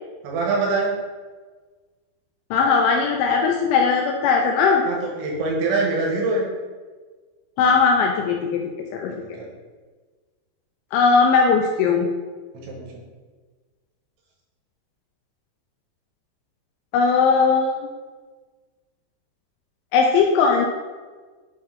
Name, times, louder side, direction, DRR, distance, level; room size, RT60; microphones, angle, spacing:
voice 1, 0.2-0.9 4.9-6.5 9.4-9.5 12.7-12.9, right 3 dB, 75° right, -2 dB, 3.2 m, -23 dB
voice 2, 2.5-4.8 7.6-8.6 8.9-9.1 10.9-12.1 16.9-17.9 19.9-20.7, left 5 dB, 85° left, 2 dB, 2.6 m, -18 dB
9.4 x 3.2 x 3.7 m, 1.4 s
omnidirectional pair, 5.7 m